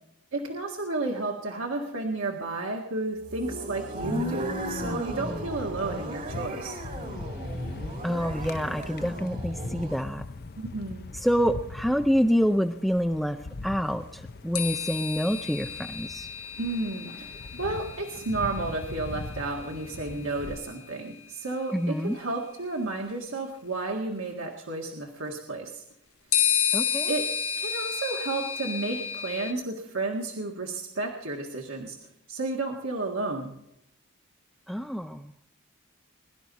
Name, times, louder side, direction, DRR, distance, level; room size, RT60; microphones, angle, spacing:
voice 1, 0.3-6.8 10.6-11.1 16.6-25.8 27.1-27.3 27.6-32.0 32.3-33.6, right 2 dB, 70° right, 1 dB, 1.8 m, -32 dB
sound 1, 3.2-10.1, equal, 40° right, 1.9 m, -35 dB
sound 2, 4.0-20.6, left 3 dB, 45° left, 0.7 m, -41 dB
voice 2, 8.0-10.2 11.2-13.4 13.6-16.3 21.7-22.2 26.7-27.1 34.7-35.3, equal, ahead, 5 dB, 0.5 m, -27 dB
sound 3, 14.5-20.2 21.5-21.6 26.3-29.5, left 9 dB, 85° left, 1.3 m, -31 dB
22.5 x 12.0 x 4.1 m, 0.79 s
head